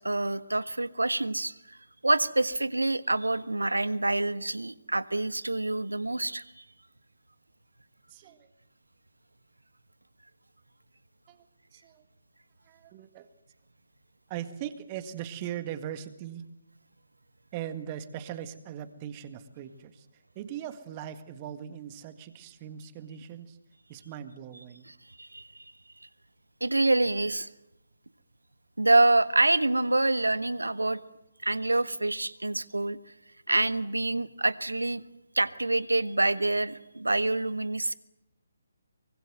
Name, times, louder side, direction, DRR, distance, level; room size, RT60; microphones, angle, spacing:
voice 1, 0.0-1.8 2.0-6.6 25.2-25.7 26.6-27.5 28.8-31.0 31.4-33.0 33.5-35.0 35.3-37.9, right 2 dB, 75° right, 15 dB, 1.3 m, -26 dB
voice 2, 8.1-8.5 11.3-12.0 12.7-13.3 14.3-16.4 17.5-23.6 23.9-24.9, right 10 dB, 25° right, 11 dB, 1.8 m, -40 dB
24.0 x 24.0 x 7.9 m, 0.86 s
figure-of-eight pair, 140°, 0 cm